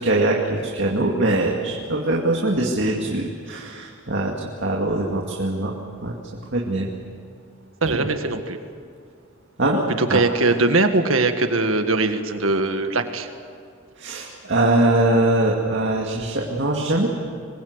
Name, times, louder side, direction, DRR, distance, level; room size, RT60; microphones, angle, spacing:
voice 1, 0.0-5.7 6.0-6.2 6.5-6.9 7.9-8.0 9.6-9.8 10.1-10.2 14.0-17.1, right 2 dB, 60° right, -1 dB, 2.4 m, -22 dB
voice 2, 7.8-8.6 10.0-13.3, right 3 dB, 80° right, 7 dB, 1.8 m, -21 dB
25.5 x 21.0 x 8.2 m, 2.3 s
head